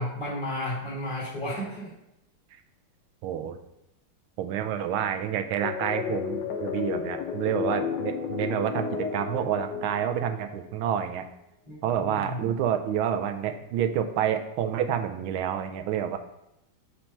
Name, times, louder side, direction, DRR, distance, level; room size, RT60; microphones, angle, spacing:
voice 1, 0.0-1.9 11.7-12.5, left 1 dB, 25° left, -9 dB, 1.9 m, -33 dB
voice 2, 3.2-3.6 4.4-11.3 11.8-16.2, right 9 dB, 80° right, 7 dB, 1.4 m, -28 dB
sound 1, 5.6-10.8, left 6 dB, 65° left, 1.1 m, -32 dB
4.5 x 4.4 x 5.2 m, 0.84 s
omnidirectional pair, 2.3 m